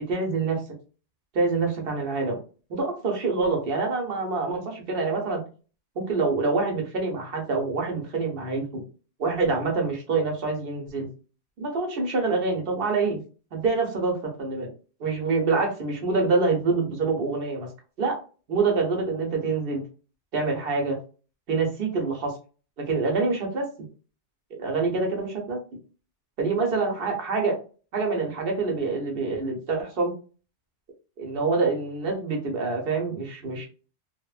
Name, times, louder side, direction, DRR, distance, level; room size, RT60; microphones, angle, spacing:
voice 1, 0.1-0.6 1.3-2.4 2.7-5.4 6.0-8.8 9.2-11.1 11.6-13.2 13.5-14.7 15.0-17.7 18.0-18.2 18.5-19.8 20.3-21.0 21.5-22.3 22.9-23.7 24.6-25.6 26.4-27.6 27.9-30.1 31.2-33.7, right 3 dB, 60° right, 1 dB, 0.9 m, -26 dB
2.9 x 2.1 x 2.3 m, 0.36 s
omnidirectional pair, 1.1 m